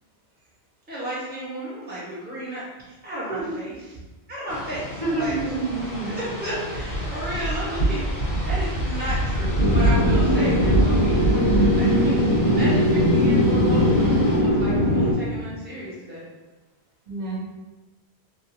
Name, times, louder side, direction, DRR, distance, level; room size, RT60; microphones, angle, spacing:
voice 1, 0.9-4.0 4.3-5.4 6.1-8.0 8.4-16.2, right 1 dB, 10° right, -10 dB, 1.1 m, -33 dB
sound 1, 4.5-14.4, right 1 dB, 85° left, 1.4 m, -26 dB
voice 2, 5.0-6.1 17.1-17.4, right 3 dB, 40° right, -6 dB, 1.0 m, -27 dB
sound 2, 9.6-15.1, equal, 55° left, 1.1 m, -20 dB
3.1 x 2.5 x 2.7 m, 1.1 s
omnidirectional pair, 1.1 m